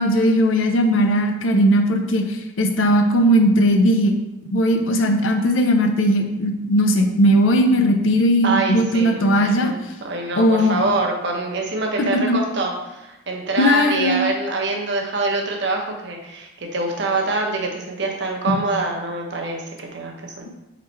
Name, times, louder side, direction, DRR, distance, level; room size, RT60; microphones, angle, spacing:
voice 1, 0.0-4.1 4.5-9.7 10.4-10.8 12.1-12.4 13.6-14.3 18.5-18.6, equal, 80° left, 5 dB, 0.6 m, -18 dB
voice 2, 8.4-9.8 10.0-20.5, right 3 dB, 60° right, 0 dB, 0.8 m, -25 dB
4.0 x 3.1 x 4.2 m, 0.96 s
head